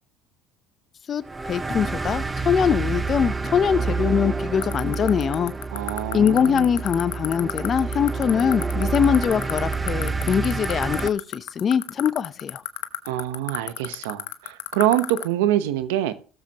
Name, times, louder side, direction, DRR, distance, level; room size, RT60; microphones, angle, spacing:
voice 1, 1.1-5.5 6.1-12.6, left 7 dB, 40° left, 0.7 m, -22 dB
sound 1, 1.2-11.1, right 4 dB, 15° right, 0.7 m, -28 dB
sound 2, 4.6-15.2, left 20 dB, 85° left, 0.9 m, -28 dB
voice 2, 5.7-6.7 13.0-16.1, right 13 dB, 90° right, 1.0 m, -25 dB
17.5 x 7.4 x 3.0 m
supercardioid pair, 95°, 0 cm